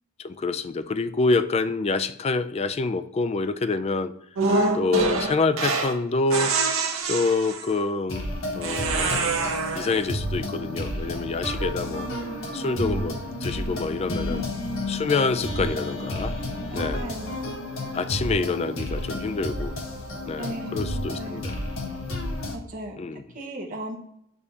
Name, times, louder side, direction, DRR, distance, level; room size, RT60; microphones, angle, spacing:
voice 1, 0.2-4.1 4.7-6.5 7.0-8.3 8.6-12.1 12.5-14.4 14.9-16.4 16.7-17.1 17.9-19.7 20.3-21.6 23.0-23.2, left 3 dB, 30° left, 10 dB, 0.3 m, -27 dB
sound 1, 4.4-6.0 6.3-7.8 8.6-10.0, right 3 dB, 80° right, 0.9 m, -25 dB
sound 2, 8.1-22.6, left 1 dB, 70° left, 1.3 m, -31 dB
voice 2, 16.7-17.5 20.4-21.5 22.5-23.0 23.3-24.0, right 1 dB, 40° right, -2 dB, 1.0 m, -36 dB
7.0 x 2.8 x 4.8 m, 0.78 s
head